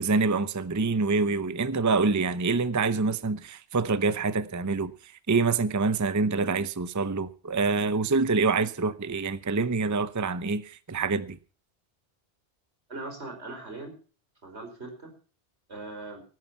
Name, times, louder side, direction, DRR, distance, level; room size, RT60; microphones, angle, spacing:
voice 1, 0.0-11.4, right 4 dB, 20° right, 0.6 m, -26 dB
voice 2, 12.9-13.9 14.4-15.1 15.7-16.2, right 2 dB, 80° right, 5.2 m, -40 dB
19.0 x 9.4 x 5.8 m
omnidirectional pair, 1.1 m